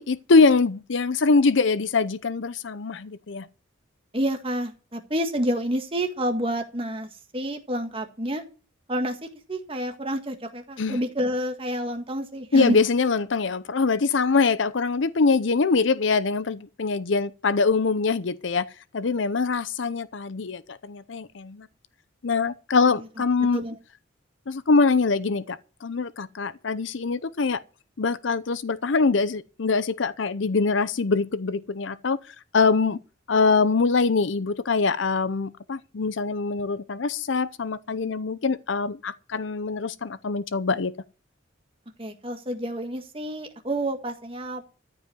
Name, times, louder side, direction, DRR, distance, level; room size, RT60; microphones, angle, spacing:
voice 1, 0.0-3.5 10.8-11.0 12.5-21.7 22.2-23.6 24.5-27.6 28.0-32.2 32.5-33.0 33.3-40.9, left 4 dB, 70° left, 0.6 m, -23 dB
voice 2, 4.1-8.4 8.9-12.8 22.9-23.0 23.5-23.8 42.0-44.6, equal, 30° right, 1.7 m, -29 dB
14.0 x 5.3 x 9.4 m
head